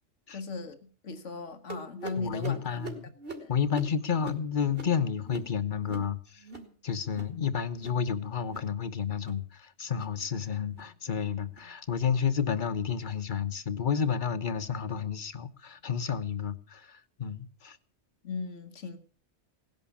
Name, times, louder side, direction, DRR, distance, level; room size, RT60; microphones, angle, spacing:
voice 1, 0.3-0.8 1.0-2.8 3.4-3.5 18.2-19.0, left 4 dB, 80° left, 1.8 m, -37 dB
sound 1, 1.7-6.7 7.0-7.4 7.7-8.1 8.4-8.7 9.1-9.5 9.9-10.2 10.6-10.9 11.4-11.7 12.3-12.5 13.1-13.3 14.0-14.1 14.9-15.0, right 3 dB, 50° right, 3.0 m, -44 dB
voice 2, 2.2-3.1 3.5-6.4 6.8-17.8, left 7 dB, 45° left, 1.2 m, -31 dB
18.0 x 11.0 x 7.2 m
omnidirectional pair, 1.2 m